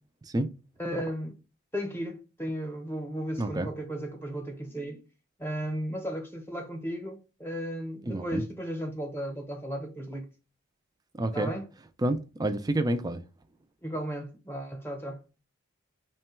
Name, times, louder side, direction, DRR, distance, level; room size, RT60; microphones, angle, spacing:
voice 1, 0.8-1.4 1.7-5.0 5.4-10.3 11.3-11.6 13.8-15.2, equal, 10° left, 0.8 m, -35 dB
voice 2, 3.4-3.7 8.0-8.4 11.2-11.5 12.0-13.2, right 1 dB, 20° right, 0.3 m, -28 dB
3.7 x 2.2 x 4.3 m
head